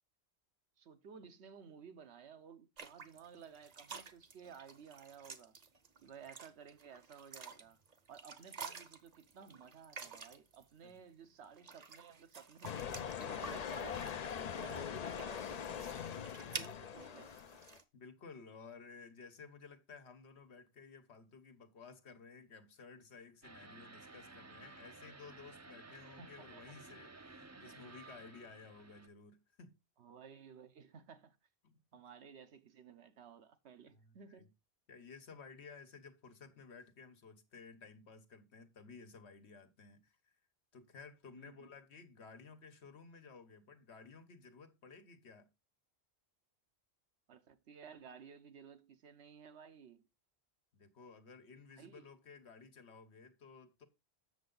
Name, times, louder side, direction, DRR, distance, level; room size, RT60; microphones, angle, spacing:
voice 1, 0.8-5.6 6.0-7.8 8.1-14.2 14.5-17.4 25.9-26.8 30.0-31.4 31.9-34.5 41.3-41.7 47.3-50.1 51.8-52.1, right 7 dB, 80° right, 1.1 m, -56 dB
sound 1, 2.8-10.6 11.4-17.8, right 5 dB, 40° right, 0.8 m, -51 dB
sound 2, 12.6-17.8, left 8 dB, 50° left, 0.5 m, -42 dB
voice 2, 17.9-29.8 31.6-31.8 33.9-34.5 34.9-40.4 40.7-45.5 50.7-53.9, left 5 dB, 80° left, 1.4 m, -55 dB
sound 3, 23.4-29.1, right 3 dB, 25° right, 0.4 m, -55 dB
7.8 x 6.7 x 3.8 m
omnidirectional pair, 1.1 m